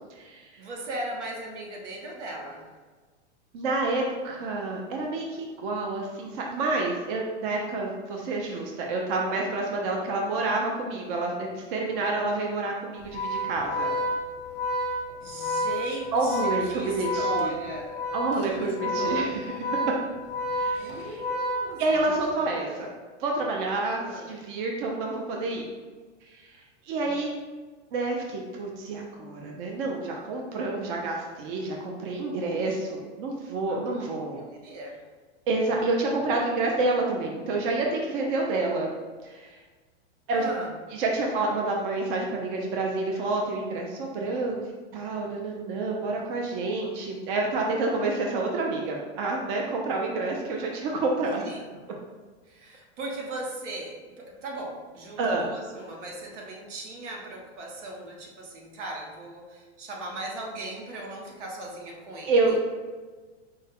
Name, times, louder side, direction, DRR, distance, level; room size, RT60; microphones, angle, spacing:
voice 1, 0.0-0.5 3.5-13.9 16.1-17.5 18.1-19.8 20.5-20.8 21.8-22.9 23.2-25.7 26.3-26.5 26.9-27.3 27.9-34.4 35.5-38.9 39.2-39.5 40.3-40.5 40.9-44.6 44.9-51.4 55.2-55.5 62.3-62.7, right 2 dB, 45° right, 0 dB, 0.6 m, -28 dB
voice 2, 0.6-2.7 14.9-18.1 18.3-19.5 20.7-22.1 22.6-22.9 24.0-24.3 27.0-27.3 33.7-34.1 34.4-35.0 35.7-35.8 40.3-40.8 51.4-51.7 52.5-62.6, right 1 dB, 80° right, 0 dB, 1.1 m, -38 dB
Organ, 13.0-22.2, equal, 20° left, 0.5 m, -30 dB
5.2 x 2.2 x 3.4 m, 1.4 s
supercardioid pair, 140°, 35 cm